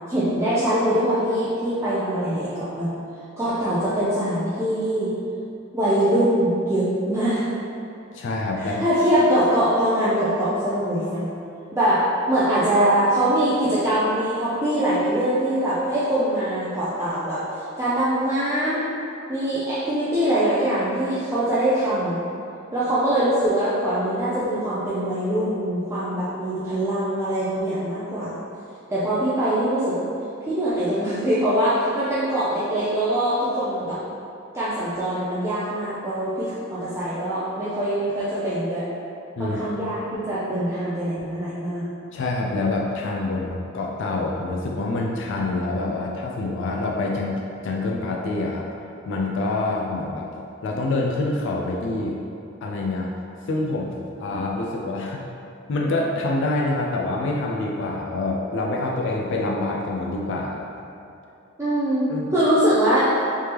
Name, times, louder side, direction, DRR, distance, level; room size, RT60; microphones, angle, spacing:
voice 1, 0.1-2.9 3.4-5.2 5.7-7.5 8.6-11.3 11.7-18.9 19.3-22.2 22.7-28.4 28.9-30.1 30.5-34.0 34.5-38.9 39.4-41.9 61.6-63.2, right 1 dB, 15° right, -11 dB, 0.5 m, -23 dB
voice 2, 8.1-8.8 39.4-39.6 42.1-48.7 49.1-50.3 50.6-52.2 52.6-53.1 53.5-55.2 55.7-60.6 62.1-62.3, left 2 dB, 60° left, -1 dB, 0.4 m, -26 dB
3.3 x 3.3 x 2.9 m, 2.7 s
head